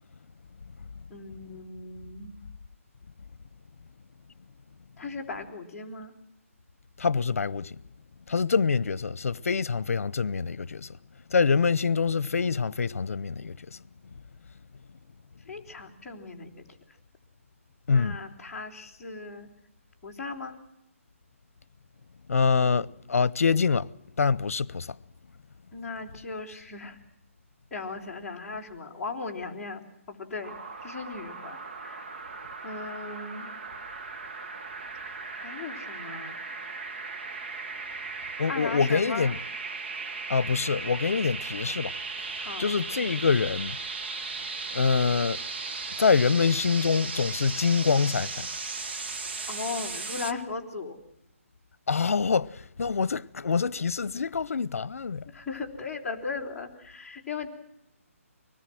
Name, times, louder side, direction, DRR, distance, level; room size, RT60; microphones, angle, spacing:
voice 1, 1.1-2.4 5.0-6.2 15.5-16.8 17.9-19.5 20.0-20.6 25.7-27.0 27.7-32.1 32.6-33.5 35.4-36.4 38.5-39.3 42.4-42.7 49.5-51.0 55.3-57.5, left 4 dB, 5° left, 3.2 m, -37 dB
voice 2, 7.0-7.8 8.3-11.0 11.3-13.8 17.9-18.2 22.3-23.9 24.2-25.0 38.4-39.4 40.3-42.0 42.3-43.8 44.7-45.4 46.0-48.5 51.9-55.3, left 5 dB, 75° left, 0.8 m, -25 dB
sound 1, 30.4-50.3, right 4 dB, 45° right, 1.5 m, -37 dB
25.0 x 19.5 x 7.7 m
hypercardioid pair, 170°, 8 cm